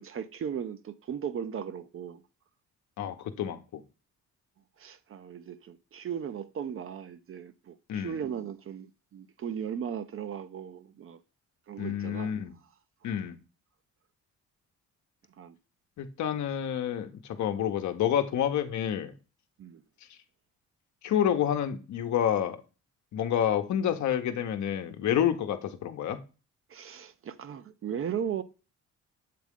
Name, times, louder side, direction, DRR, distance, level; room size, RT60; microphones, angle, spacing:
voice 1, 0.0-2.2 4.8-11.2 11.7-12.4 13.0-13.2 15.4-15.6 19.6-19.8 26.7-28.4, right 8 dB, 45° right, 0.6 m, -37 dB
voice 2, 3.0-3.8 7.9-8.2 11.8-12.5 13.0-13.4 16.0-19.1 21.0-22.6 23.1-26.2, left 9 dB, 70° left, 0.9 m, -29 dB
7.6 x 3.6 x 3.6 m
cardioid pair, 90°, 30 cm